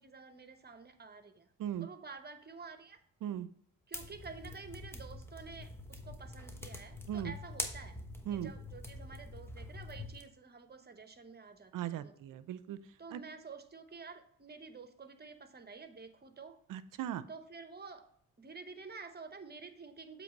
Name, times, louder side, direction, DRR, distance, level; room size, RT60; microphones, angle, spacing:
voice 1, 0.0-1.5 1.8-3.0 3.9-8.0 8.3-12.1 13.0-16.6 17.3-18.0 18.4-20.2, right 4 dB, 25° right, 9 dB, 0.9 m, -50 dB
sound 1, 3.9-10.2, left 1 dB, 5° left, 1.1 m, -45 dB
voice 2, 11.7-12.8 13.1-13.2 16.7-17.2, right 11 dB, 60° right, 15 dB, 0.6 m, -38 dB
7.6 x 3.2 x 5.3 m, 0.66 s
supercardioid pair, 60°, 36 cm